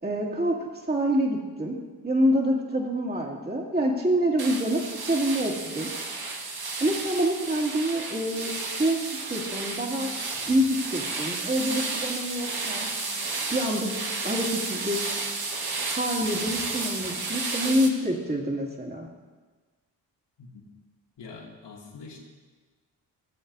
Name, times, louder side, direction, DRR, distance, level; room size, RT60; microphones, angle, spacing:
voice 1, 0.0-1.8 2.0-5.9 6.8-8.5 8.8-10.1 10.5-12.9 13.5-14.0 14.2-15.0 16.0-19.1, equal, 20° right, -2 dB, 2.4 m, -26 dB
sound 1, 4.4-17.9, right 3 dB, 55° right, 1.5 m, -32 dB
voice 2, 21.2-22.2, left 4 dB, 65° left, -2 dB, 2.4 m, -44 dB
19.5 x 7.2 x 2.7 m, 1.3 s
supercardioid pair, 45°, 45 cm